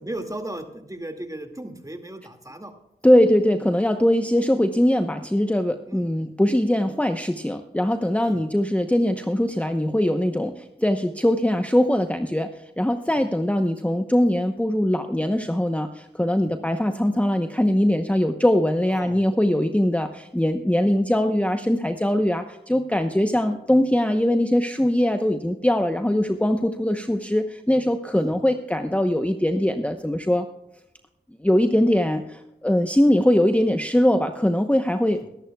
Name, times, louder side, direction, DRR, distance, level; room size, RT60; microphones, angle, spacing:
voice 1, 0.0-2.7 5.9-6.3 8.2-8.4 13.1-13.2 16.4-16.5 18.9-19.2 28.1-28.3 35.1-35.2, right 1 dB, 20° right, 5 dB, 2.1 m, -36 dB
voice 2, 3.0-30.5 31.4-35.3, left 1 dB, 5° left, 7 dB, 0.9 m, -21 dB
22.0 x 11.5 x 2.3 m, 0.89 s
cardioid pair, 40°, 19 cm